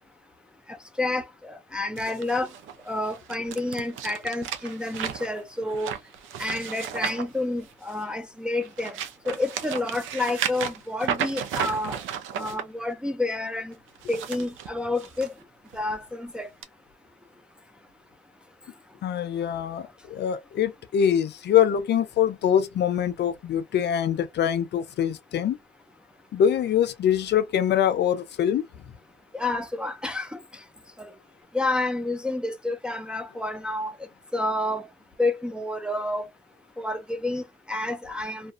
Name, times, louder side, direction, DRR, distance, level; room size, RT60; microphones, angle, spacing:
voice 1, 1.0-2.5 2.9-5.9 6.4-9.0 9.3-12.0 12.3-13.7 14.1-15.3 15.7-16.5 29.3-30.4 31.0-31.1 31.5-33.9 34.3-34.9 35.2-36.3 36.8-38.5, left 2 dB, 5° right, 0.4 m, -29 dB
sound 1, 2.0-8.1 8.6-12.6 13.9-15.3 15.7-16.0 16.6-16.7, right 8 dB, 80° right, 0.5 m, -34 dB
voice 2, 19.0-25.6 26.3-28.6, left 9 dB, 60° left, 0.5 m, -24 dB
2.4 x 2.3 x 2.3 m
cardioid pair, 90°, 20 cm